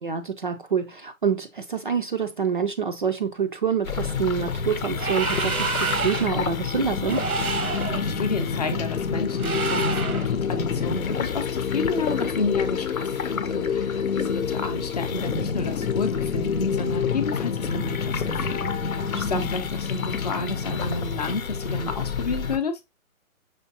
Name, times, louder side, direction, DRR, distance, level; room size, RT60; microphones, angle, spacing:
voice 1, 0.0-7.2 19.1-19.5, right 6 dB, 40° right, 0.4 m, -27 dB
sound 1, 3.8-22.6, left 6 dB, 80° left, 0.8 m, -27 dB
sound 2, 4.9-6.4 7.0-8.0 9.4-10.3, right 4 dB, 90° right, 1.0 m, -28 dB
voice 2, 7.9-22.8, left 3 dB, 30° left, 0.6 m, -31 dB
5.6 x 3.4 x 2.7 m
figure-of-eight pair, 135°, 42 cm